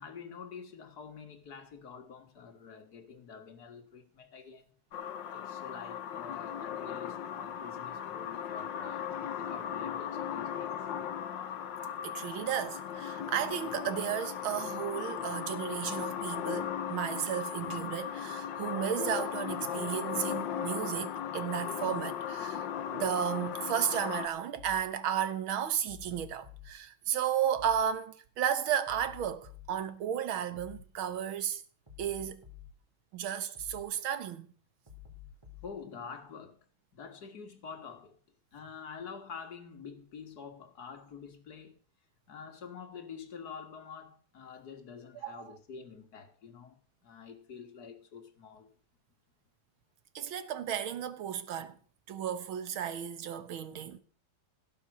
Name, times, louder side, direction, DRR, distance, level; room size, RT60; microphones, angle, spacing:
voice 1, 0.0-4.8 5.3-10.9 35.6-36.6 36.9-38.2 38.5-41.8 42.3-48.7, left 6 dB, 50° left, 2.2 m, -47 dB
sound 1, 4.9-24.3, left 9 dB, 70° left, 1.6 m, -37 dB
voice 2, 12.0-31.6 32.0-32.4 33.1-34.5 45.2-45.5 50.2-51.8 52.1-54.0, right 9 dB, 85° right, 2.0 m, -34 dB
sound 2, 24.5-24.9 25.9-26.7 27.5-27.9 28.9-29.8 30.5-30.9 31.9-32.8 33.5-33.9 34.9-35.8, left 10 dB, 15° right, 4.1 m, -50 dB
17.0 x 7.1 x 6.4 m
omnidirectional pair, 2.2 m